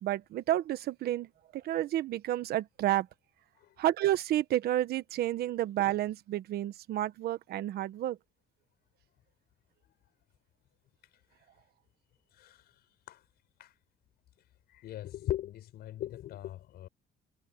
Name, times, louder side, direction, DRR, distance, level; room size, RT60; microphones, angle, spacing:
voice 1, 0.0-3.1 3.8-8.2, right 13 dB, 70° right, 1.3 m, -30 dB
voice 2, 12.3-12.7 13.1-13.2 13.6-13.7 14.7-16.9, left 13 dB, 70° left, 5.8 m, -39 dB
cardioid pair, 110°, 17 cm